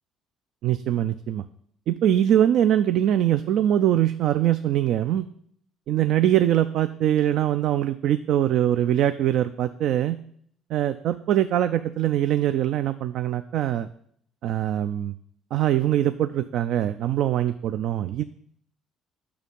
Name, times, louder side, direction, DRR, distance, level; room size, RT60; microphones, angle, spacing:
voice 1, 0.6-1.4 1.9-5.3 5.9-10.2 10.7-13.9 14.4-15.1 15.5-18.2, right 11 dB, 65° right, 11 dB, 0.3 m, -22 dB
6.8 x 6.4 x 5.3 m, 0.65 s
hypercardioid pair, 60°, 0 cm